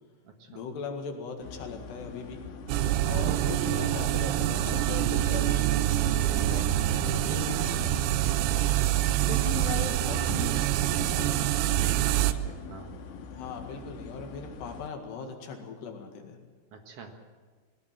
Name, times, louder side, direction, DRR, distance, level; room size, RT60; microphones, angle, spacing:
voice 1, 0.5-2.4 3.1-8.0 9.3-11.7 12.3-12.5 13.3-16.4, left 5 dB, 70° left, 4 dB, 4.0 m, -39 dB
sound 1, 1.4-14.9, left 4 dB, 90° left, 3.8 m, -44 dB
sound 2, 2.7-12.3, right 13 dB, 80° right, 3.0 m, -26 dB
voice 2, 8.4-8.9 11.8-12.9 16.7-17.1, right 5 dB, 55° right, 4 dB, 1.7 m, -45 dB
21.5 x 18.0 x 7.6 m, 1.5 s
omnidirectional pair, 5.2 m